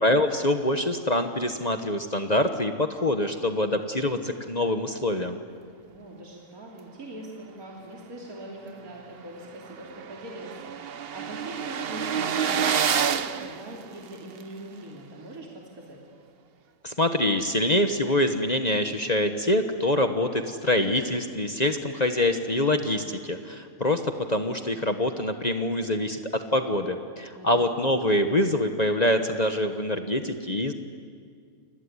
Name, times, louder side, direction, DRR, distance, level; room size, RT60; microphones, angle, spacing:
voice 1, 0.0-5.4 16.8-26.2 26.5-30.7, left 1 dB, 30° left, 7 dB, 1.2 m, -25 dB
voice 2, 5.8-16.0 27.4-27.9, right 1 dB, 80° right, -2 dB, 3.6 m, -42 dB
sound 1, 8.8-8.9 9.3-9.4 9.5-14.4, right 7 dB, 50° right, 0.9 m, -28 dB
28.5 x 21.5 x 9.8 m, 2.1 s
omnidirectional pair, 1.5 m